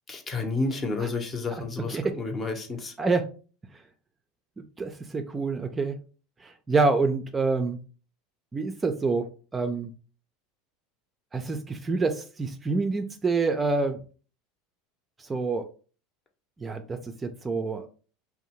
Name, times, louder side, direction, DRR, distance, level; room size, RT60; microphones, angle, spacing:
voice 1, 0.1-2.9, left 3 dB, 30° left, 4 dB, 0.7 m, -30 dB
voice 2, 4.6-6.0 6.4-7.8 8.5-9.3 9.5-9.9 11.3-14.0 15.2-15.7 16.6-17.9, right 3 dB, 20° right, 7 dB, 0.4 m, -27 dB
2.6 x 2.0 x 2.9 m, 0.37 s
hypercardioid pair, 85°, 0 cm